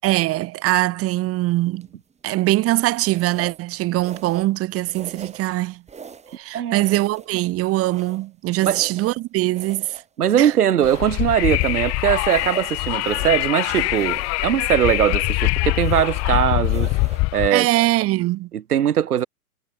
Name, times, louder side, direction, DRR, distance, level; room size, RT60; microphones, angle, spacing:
voice 1, 0.0-1.9 2.2-5.8 6.4-9.9 10.3-10.5 17.5-18.5, right 17 dB, 30° right, 2.6 m, -22 dB
sound 1, 1.8-2.1 3.0-3.6 4.0-4.6 4.9-5.5 5.9-6.4 6.8-8.3 8.6-9.2 9.5-11.1 11.5-13.5 13.9-14.5 14.8-15.3 15.7-16.3 16.6-17.3 17.6-17.9, right 6 dB, 15° right, 7.6 m, -41 dB
voice 2, 10.2-16.9 17.3-17.7 18.5-19.3, right 10 dB, 75° right, 2.4 m, -20 dB
Wind, 10.8-17.5, left 24 dB, 35° left, 2.1 m, -23 dB
hypercardioid pair, 120°, 45 cm